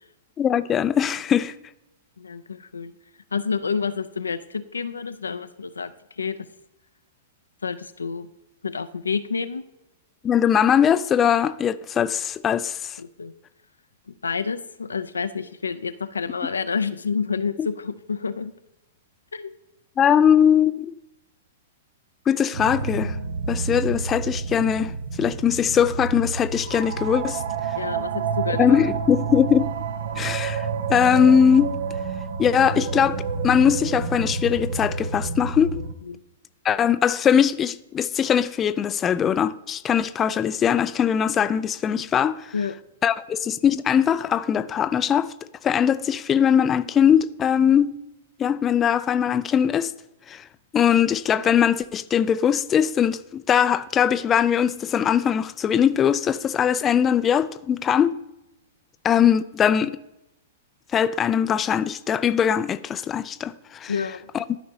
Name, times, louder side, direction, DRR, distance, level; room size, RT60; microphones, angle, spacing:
voice 1, 0.4-1.5 10.2-13.0 20.0-20.9 22.3-23.2 23.5-24.9 25.2-27.4 28.6-29.7 30.2-31.7 32.4-35.8 36.6-42.5 43.0-45.3 45.6-47.9 48.4-49.9 50.3-50.4 50.7-58.1 59.0-60.0 60.9-63.9 64.3-64.4, left 8 dB, 25° left, 0.3 m, -21 dB
voice 2, 2.2-2.9 3.3-6.4 7.6-8.3 8.6-9.6 13.0-13.3 14.2-18.5 19.3-19.5 27.8-28.8 36.0-36.2 42.5-42.7 63.9-64.3, left 5 dB, 90° left, 0.4 m, -29 dB
sound 1, 22.5-35.9, right 5 dB, 70° right, 0.6 m, -29 dB
13.0 x 5.1 x 2.8 m
hypercardioid pair, 115°, 0 cm